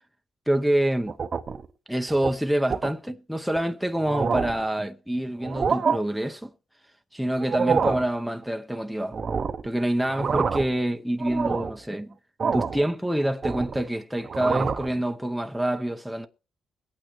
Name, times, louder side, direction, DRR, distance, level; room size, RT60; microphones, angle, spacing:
voice 1, 0.5-1.1 1.9-6.5 7.1-9.2 9.6-12.1 12.5-16.3, right 1 dB, ahead, 0.7 m, -26 dB
sound 1, 1.1-1.7 2.1-2.3 2.7-2.9 3.5-3.6 4.0-4.7 5.4-6.0 7.4-8.1 9.1-9.7 10.0-10.8 11.2-11.8 12.4-12.8 13.2-13.9 14.2-14.9, right 5 dB, 40° right, 0.7 m, -27 dB
22.0 x 8.8 x 3.0 m
cardioid pair, 105°, 0 cm